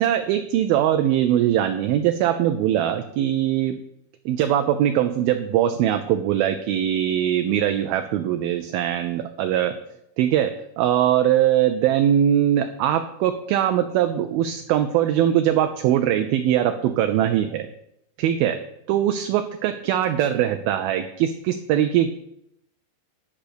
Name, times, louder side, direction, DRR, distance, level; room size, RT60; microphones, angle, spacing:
voice 1, 0.0-3.8 4.3-9.8 10.2-17.7 18.2-18.6 18.9-22.1, right 11 dB, 80° right, 7 dB, 2.2 m, -21 dB
11.0 x 5.8 x 6.8 m, 0.79 s
omnidirectional pair, 4.8 m